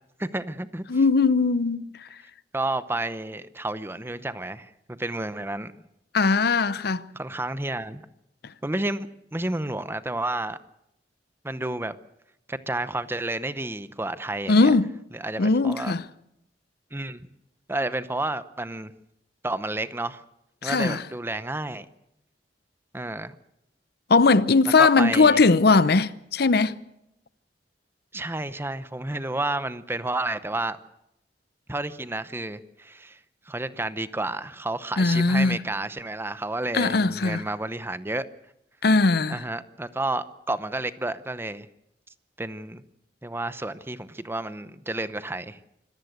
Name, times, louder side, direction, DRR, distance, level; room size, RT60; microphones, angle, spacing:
voice 1, 0.2-0.8 2.5-5.7 7.1-8.1 8.6-10.6 11.4-12.0 12.5-14.7 15.1-15.9 16.9-17.3 17.7-18.9 19.4-20.2 20.6-21.9 22.9-23.3 24.8-25.4 28.1-30.8 31.7-33.2 33.5-38.3 39.3-41.7 42.4-42.8 43.2-45.6, right 2 dB, 15° right, 0.8 m, -31 dB
voice 2, 0.9-2.1 6.1-7.1 14.5-14.9 15.4-16.0 20.6-21.0 24.1-26.8 35.0-35.6 36.7-37.4 38.8-39.4, left 3 dB, 65° left, 0.7 m, -20 dB
25.5 x 15.0 x 8.0 m
head